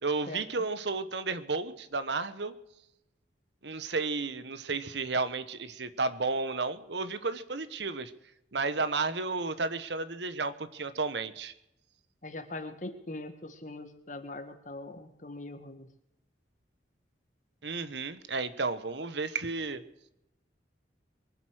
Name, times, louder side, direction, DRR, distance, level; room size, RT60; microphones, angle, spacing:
voice 1, 0.0-2.5 3.6-8.1 8.5-11.5 17.6-19.8, right 3 dB, 75° right, 14 dB, 1.1 m, -32 dB
voice 2, 12.2-15.9, left 2 dB, 45° left, 8 dB, 1.7 m, -41 dB
23.0 x 8.1 x 6.4 m, 0.85 s
head